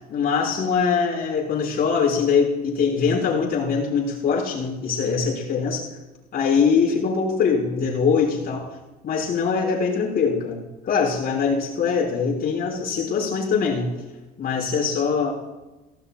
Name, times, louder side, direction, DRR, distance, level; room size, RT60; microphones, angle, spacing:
voice 1, 0.0-5.9 6.3-8.7 9.0-13.9 14.4-15.3, left 5 dB, 45° left, -5 dB, 5.6 m, -22 dB
18.0 x 15.5 x 2.4 m, 1.1 s
supercardioid pair, 95°, 21 cm